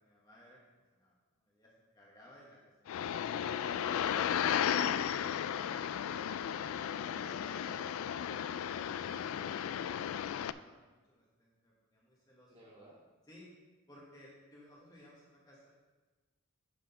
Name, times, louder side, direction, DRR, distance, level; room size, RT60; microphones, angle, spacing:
voice 1, 0.0-4.7 5.0-6.9 8.2-12.5 13.3-13.5 13.9-15.7, equal, 20° left, -5 dB, 1.4 m, -60 dB
sound 1, 2.9-10.5, left 9 dB, 80° left, 0.3 m, -34 dB
voice 2, 4.5-5.3 7.1-8.2 12.5-13.0, right 1 dB, 25° right, -5 dB, 2.2 m, -57 dB
9.8 x 4.9 x 5.4 m, 1.2 s
head